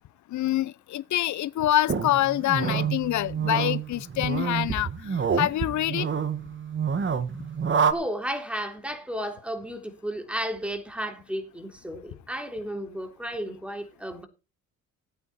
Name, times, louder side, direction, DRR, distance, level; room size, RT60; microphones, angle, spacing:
voice 1, 0.3-6.1, left 13 dB, 70° left, 0.8 m, -26 dB
sound 1, 1.9-7.9, right 6 dB, 40° right, 1.7 m, -28 dB
voice 2, 7.9-14.3, equal, 5° right, 3.5 m, -33 dB
16.5 x 9.0 x 4.3 m
cardioid pair, 90°, 30 cm